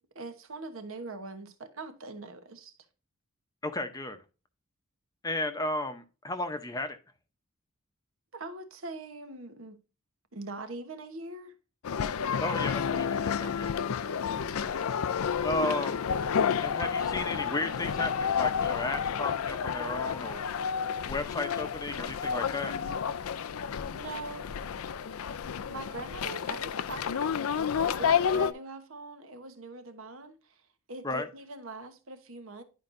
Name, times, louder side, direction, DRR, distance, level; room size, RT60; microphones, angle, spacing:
voice 1, 0.0-2.7 8.3-9.8 10.3-11.6 23.8-24.5 25.7-30.6 30.9-32.6, right 2 dB, 75° right, 1.1 m, -42 dB
voice 2, 3.6-4.2 5.2-7.0 12.4-13.7 15.4-16.0 16.6-20.4 21.1-22.7 31.0-31.3, left 2 dB, 15° left, 0.7 m, -34 dB
sound 1, 11.8-28.5, left 7 dB, 90° left, 0.4 m, -30 dB
10.5 x 4.7 x 2.6 m
head